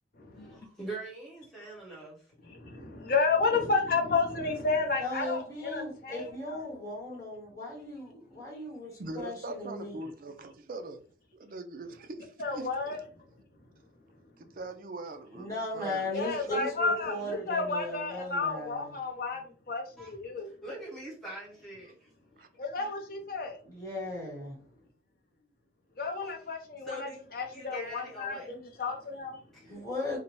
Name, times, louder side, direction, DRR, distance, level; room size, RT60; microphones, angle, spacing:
voice 1, 0.3-2.2 20.0-20.1 20.4-22.1 26.2-26.4 26.8-27.2 27.5-28.5 29.5-29.8, right 1 dB, ahead, 1.0 m, -43 dB
voice 2, 2.6-6.6 12.4-13.0 16.1-19.4 19.7-20.5 22.6-23.5 26.0-29.4, left 4 dB, 50° left, 0.6 m, -31 dB
voice 3, 5.0-10.0 15.3-18.9 23.6-24.5 29.7-30.2, left 2 dB, 20° left, 1.0 m, -37 dB
voice 4, 9.0-11.1 11.3-13.0 14.4-16.7 22.4-22.5, right 2 dB, 45° right, 0.3 m, -42 dB
2.7 x 2.1 x 3.0 m
head